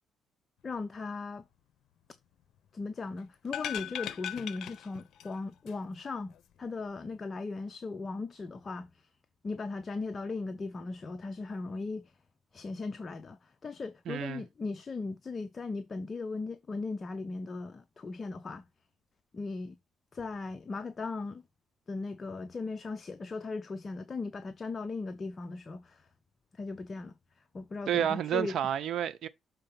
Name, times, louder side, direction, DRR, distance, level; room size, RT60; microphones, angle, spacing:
voice 1, 0.6-1.4 2.7-8.9 9.4-12.0 12.5-18.6 19.3-19.8 20.1-21.4 21.9-26.1 26.5-27.2 27.5-28.6, left 3 dB, 35° left, 0.7 m, -38 dB
sound 1, 3.4-5.4 5.7-5.8, left 10 dB, 75° left, 0.7 m, -38 dB
voice 2, 14.1-14.4 27.9-29.3, right 10 dB, 65° right, 0.7 m, -30 dB
6.6 x 4.0 x 5.8 m
cardioid pair, 100°, 0 cm